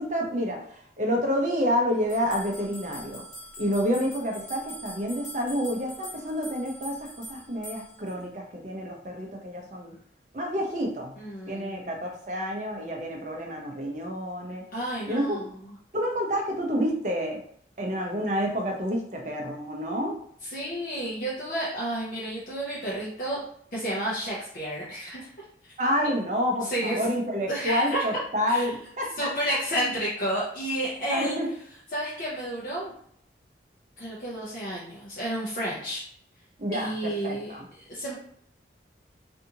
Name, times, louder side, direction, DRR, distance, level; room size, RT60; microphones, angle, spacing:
voice 1, 0.0-3.2 3.6-9.9 10.3-11.1 11.5-14.6 15.1-15.4 15.9-17.4 17.8-20.1 25.8-29.3 31.1-31.5 36.6-36.9 37.2-37.7, equal, 40° right, 1 dB, 0.6 m, -29 dB
sound 1, 2.1-8.1, right 1 dB, 30° left, 1.3 m, -43 dB
voice 2, 11.2-12.0 14.7-15.4 20.4-23.4 23.7-25.3 26.6-27.0 27.5-28.2 28.5-28.7 29.2-31.4 31.9-32.9 34.0-36.0 36.7-38.1, right 1 dB, 50° left, -6 dB, 0.6 m, -31 dB
2.6 x 2.4 x 2.7 m, 0.64 s
head